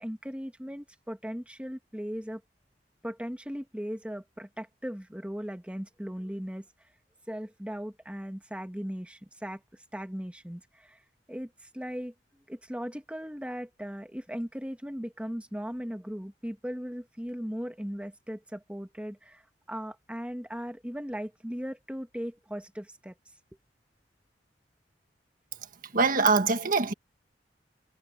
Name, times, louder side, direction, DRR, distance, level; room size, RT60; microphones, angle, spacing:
voice 1, 0.0-2.4 3.0-6.7 7.3-11.0 11.3-12.1 12.5-19.4 19.7-23.1, equal, 5° right, 1.7 m, -38 dB
voice 2, 25.9-26.9, right 4 dB, 50° right, 1.6 m, -23 dB
head